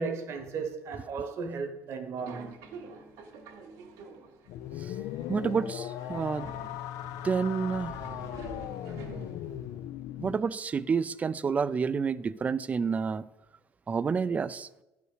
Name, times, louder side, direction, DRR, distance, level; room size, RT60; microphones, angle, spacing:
voice 1, 0.0-2.6 9.4-9.5, right 4 dB, 55° right, 1.1 m, -35 dB
Subway metro underground, 2.2-9.7, right 4 dB, 85° right, 1.4 m, -48 dB
sound 1, 4.5-10.4, left 12 dB, 75° left, 0.4 m, -38 dB
voice 2, 5.3-6.5 7.2-8.0 10.2-13.2 13.9-14.7, right 5 dB, 25° right, 0.3 m, -29 dB
11.0 x 5.1 x 4.9 m
cardioid pair, 125°, 6 cm